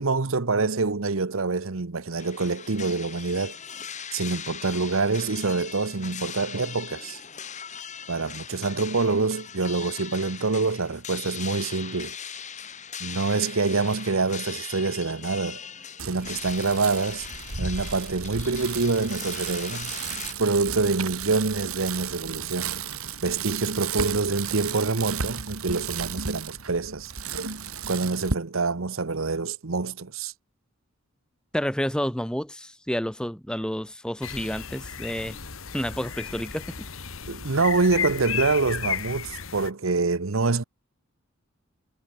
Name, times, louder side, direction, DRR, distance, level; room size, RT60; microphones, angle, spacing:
voice 1, 0.0-3.6 4.1-7.2 8.1-12.2 13.0-15.6 16.0-17.3 17.6-19.9 20.4-22.8 23.2-27.1 27.9-30.3 37.3-40.6, right 3 dB, 70° right, 1.0 m, -26 dB
sound 1, 2.2-20.3, left 8 dB, 35° left, 3.5 m, -40 dB
Bicycle, 16.0-28.3, right 6 dB, 85° right, 2.8 m, -34 dB
voice 2, 31.5-35.4 35.7-36.6, equal, 5° left, 1.2 m, -29 dB
sound 2, 34.2-39.7, left 8 dB, 70° left, 2.0 m, -34 dB
head